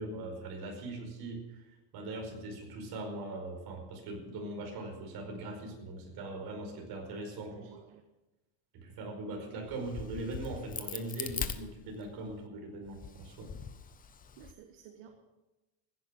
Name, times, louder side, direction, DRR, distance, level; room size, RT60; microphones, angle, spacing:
voice 1, 0.0-1.7 1.9-7.8 8.7-13.5, right 2 dB, 50° right, 2 dB, 5.1 m, -41 dB
voice 2, 7.5-8.0 14.4-15.1, right 10 dB, 65° right, 5 dB, 1.6 m, -54 dB
Crack, 9.7-12.3 12.9-14.5, left 7 dB, 20° left, 0.7 m, -41 dB
15.5 x 10.5 x 6.4 m, 1.0 s
cardioid pair, 150°, 48 cm